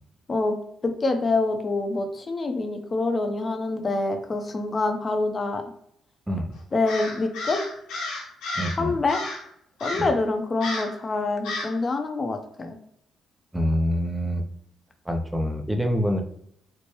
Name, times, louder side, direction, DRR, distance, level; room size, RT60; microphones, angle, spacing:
voice 1, 0.8-5.6 6.7-7.6 8.8-9.2 9.8-12.8, left 3 dB, 35° left, 5 dB, 0.7 m, -26 dB
Crow, 6.9-8.8 9.1-9.5 9.8-10.2 10.6-11.0 11.4-11.8, left 2 dB, 90° left, 1.2 m, -32 dB
voice 2, 8.6-8.9 13.5-14.5 15.1-16.2, equal, 10° right, 5 dB, 0.6 m, -25 dB
4.5 x 2.1 x 3.1 m, 0.72 s
cardioid pair, 90°, 0 cm